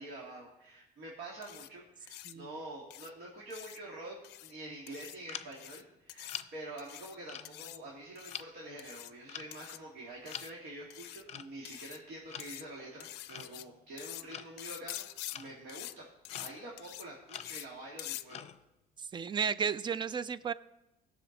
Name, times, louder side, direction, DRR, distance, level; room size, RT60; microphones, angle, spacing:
voice 1, 0.0-15.1 15.3-16.1 16.4-18.5, right 1 dB, 70° right, -2 dB, 2.2 m, -47 dB
sound 1, 1.4-1.7 2.1-2.3 2.9-3.1 3.5-3.8 4.2-4.5 4.9-5.2 5.5-5.8 6.1-6.4 6.8-7.1 7.4-7.8 8.1-8.4 8.8-9.1 9.5-9.8 10.3-10.5 10.9-11.2 11.6-12.0 12.4-12.6 13.0-13.6 14.0-14.2 14.6-15.4 15.7-15.9 16.2-16.5 16.8-17.0 17.3-17.7 18.0-18.2, left 16 dB, 85° left, 0.4 m, -45 dB
sound 2, 5.3-5.7 6.3-6.5 7.3-8.0 8.3-8.5 9.3-9.6 10.3-10.6 11.3-11.5 12.3-12.6 13.3-13.7 14.3-14.5 15.3-15.7 16.3-16.7 17.3-17.7 18.3-18.6, left 8 dB, 40° left, 0.6 m, -45 dB
voice 2, 19.0-20.5, right 6 dB, 25° right, 16 dB, 0.4 m, -33 dB
16.0 x 6.3 x 3.9 m, 0.92 s
cardioid pair, 110°, 17 cm